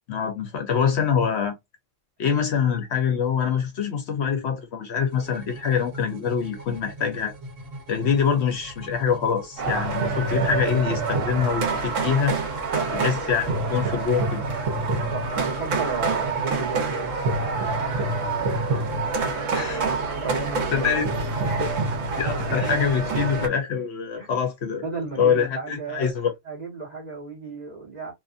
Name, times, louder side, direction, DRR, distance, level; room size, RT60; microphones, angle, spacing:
voice 1, 0.1-1.5 2.2-7.3 7.9-12.3 12.9-14.4 19.5-19.8 20.7-21.0 22.2-24.8 25.2-26.3, left 7 dB, 65° left, 0.8 m, -24 dB
sound 1, 5.0-21.7, right 2 dB, 55° right, 1.3 m, -40 dB
sound 2, 9.6-23.5, right 3 dB, 75° right, 1.2 m, -26 dB
voice 2, 12.7-13.1 15.1-18.0 18.3-18.8 19.1-22.0 24.2-24.3 24.8-26.1 26.4-28.1, right 4 dB, 35° right, 1.4 m, -34 dB
2.7 x 2.5 x 2.4 m
omnidirectional pair, 1.3 m